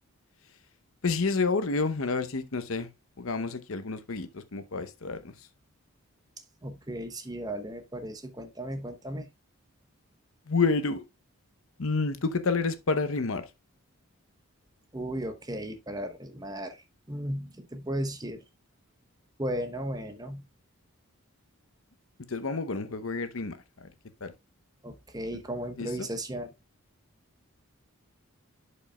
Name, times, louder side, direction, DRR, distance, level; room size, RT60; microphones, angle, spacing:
voice 1, 1.0-2.9 3.2-5.3 10.5-11.0 11.8-13.4 22.3-23.9 24.2-24.3 25.8-25.9, left 4 dB, 65° left, 0.8 m, -29 dB
voice 2, 6.6-9.3 14.9-18.4 19.4-20.5 24.8-26.5, right 1 dB, 15° right, 0.9 m, -35 dB
11.0 x 5.2 x 2.3 m
head